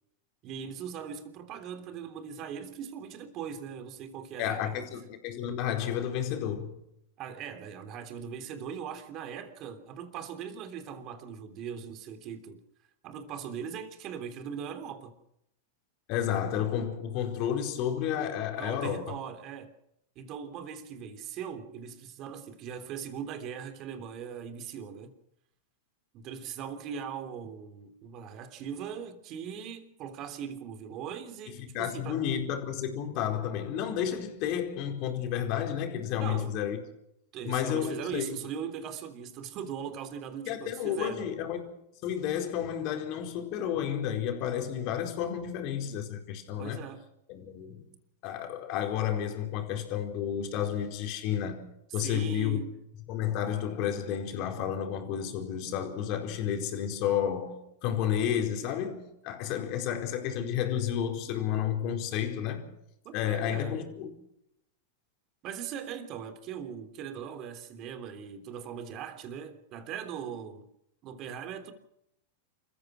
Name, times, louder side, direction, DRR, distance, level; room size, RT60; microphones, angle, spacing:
voice 1, 0.4-4.8 7.2-12.6 13.0-15.1 18.5-19.7 20.1-25.1 26.1-32.2 36.1-36.5 37.3-41.3 46.6-47.0 51.9-52.7 63.0-63.9 65.4-70.7 71.0-71.7, right 7 dB, 45° right, 3.3 m, -40 dB
voice 2, 4.4-6.7 16.1-19.1 31.5-36.8 37.4-38.3 40.5-41.7 42.0-46.8 47.3-47.8 48.2-51.6 51.9-52.6 53.1-62.6 63.1-64.1, left 9 dB, 50° left, 4.6 m, -31 dB
28.0 x 15.0 x 6.4 m
hypercardioid pair, 105°, 0 cm